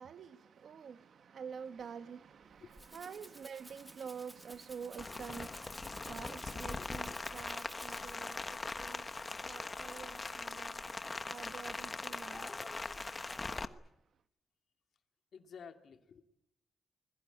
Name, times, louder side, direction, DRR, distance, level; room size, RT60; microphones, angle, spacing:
voice 1, 0.0-10.8 11.3-12.5, right 6 dB, 65° right, 1.4 m, -48 dB
Rattle (instrument), 2.4-8.4, right 1 dB, 5° right, 2.1 m, -55 dB
Rain, 5.0-13.6, left 3 dB, 25° left, 1.1 m, -41 dB
voice 2, 12.3-12.7 15.3-16.2, left 6 dB, 65° left, 2.4 m, -53 dB
24.5 x 21.5 x 9.2 m
wide cardioid pair, 130°, 0 cm